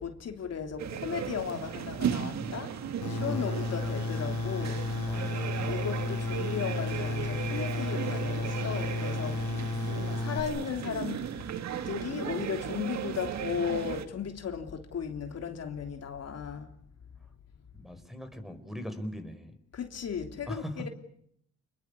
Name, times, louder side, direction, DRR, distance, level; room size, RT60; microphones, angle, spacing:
voice 1, 0.0-2.7 3.1-4.9 5.6-9.8 10.2-11.3 11.8-16.7 19.7-20.9, left 7 dB, 55° left, 3.2 m, -36 dB
sound 1, 0.8-14.1, right 9 dB, 65° right, 1.8 m, -36 dB
voice 2, 2.3-3.0 3.3-3.5 5.1-5.4 17.7-19.6 20.5-20.9, equal, ahead, 5.1 m, -40 dB
sound 2, 3.0-10.4, left 3 dB, 85° left, 6.8 m, -33 dB
29.0 x 21.0 x 8.5 m
cardioid pair, 90°, 30 cm